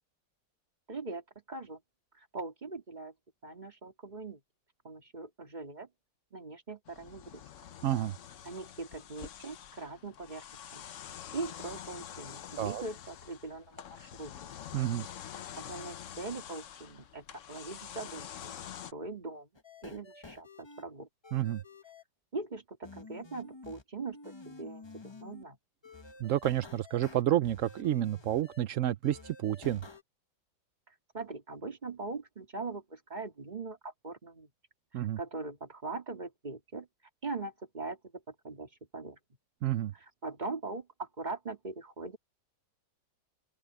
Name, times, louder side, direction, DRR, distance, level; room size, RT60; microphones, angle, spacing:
voice 1, 0.9-1.2 1.5-1.8 2.2-3.1 3.4-4.4 4.8-5.9 6.3-7.4 8.4-10.4 10.7-10.9 11.3-14.3 15.4-18.5 18.9-19.5 19.8-21.1 22.3-24.8 25.2-25.6 31.1-34.5 34.9-36.9 37.2-38.0 38.3-39.2 40.0-42.2, right 3 dB, 25° right, 2.4 m, -41 dB
sound 1, 6.9-18.9, left 10 dB, 60° left, 0.8 m, -46 dB
voice 2, 7.8-8.1 12.6-12.8 14.7-15.0 21.3-21.6 26.2-29.8 34.9-35.2 39.6-39.9, right 12 dB, 70° right, 0.7 m, -30 dB
sound 2, 19.5-20.8 21.2-22.0 22.8-23.8 24.1-25.4 25.8-28.6 29.0-30.0, left 3 dB, 25° left, 0.6 m, -51 dB
omnidirectional pair, 2.0 m